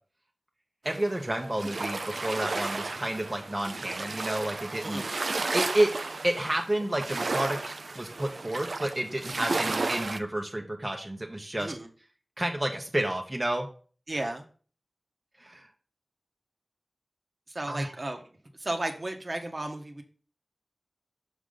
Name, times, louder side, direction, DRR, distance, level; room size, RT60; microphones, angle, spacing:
voice 1, 0.8-5.0 5.5-5.9 6.2-11.7 12.4-13.7 15.4-15.7 17.7-17.9, right 1 dB, 20° right, 2 dB, 0.8 m, -30 dB
sound 1, 0.9-10.2, right 3 dB, 70° right, 0.4 m, -33 dB
voice 2, 4.8-5.1 11.6-11.9 14.1-14.4 17.5-18.2 18.5-20.0, right 1 dB, 45° right, 4 dB, 1.0 m, -34 dB
6.3 x 5.0 x 3.8 m, 0.39 s
wide cardioid pair, 70°, 0 cm